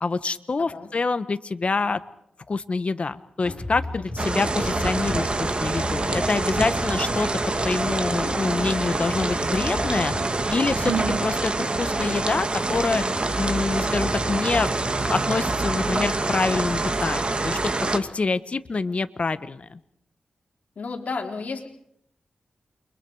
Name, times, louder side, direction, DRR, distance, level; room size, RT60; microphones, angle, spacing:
voice 1, 0.0-2.0 2.5-7.3 7.6-10.1 10.5-13.0 13.4-14.7 15.0-17.6 17.9-19.8, left 4 dB, 50° left, 12 dB, 1.3 m, -26 dB
voice 2, 0.6-0.9 4.0-4.1 20.8-21.7, left 4 dB, 65° left, 1 dB, 4.2 m, -32 dB
sound 1, 3.4-10.2, left 2 dB, 15° left, 5.2 m, -35 dB
sound 2, 4.2-18.0, right 2 dB, 40° right, 2.1 m, -26 dB
Sigh, 10.7-11.3, right 7 dB, 80° right, 1.1 m, -28 dB
29.5 x 24.0 x 4.9 m, 0.73 s
cardioid pair, 65°, 3 cm